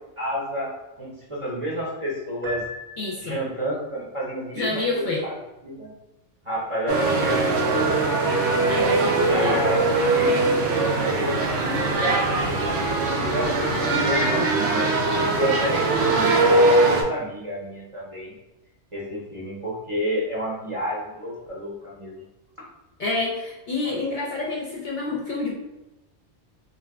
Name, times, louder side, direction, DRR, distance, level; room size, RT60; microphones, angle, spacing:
voice 1, 0.2-0.7 1.0-2.6 3.2-5.9 6.4-8.0 9.3-12.6 13.2-18.3 18.9-22.2 23.8-23.9, equal, 35° right, -6 dB, 0.7 m, -30 dB
Piano, 2.4-3.7, left 1 dB, 60° right, 0.9 m, -37 dB
voice 2, 3.0-3.4 4.5-5.2 8.7-9.6 23.0-25.6, left 3 dB, 50° left, -4 dB, 0.7 m, -28 dB
sound 1, 6.9-17.0, right 2 dB, 85° right, 0.9 m, -21 dB
2.7 x 2.2 x 3.4 m, 1.0 s
omnidirectional pair, 1.2 m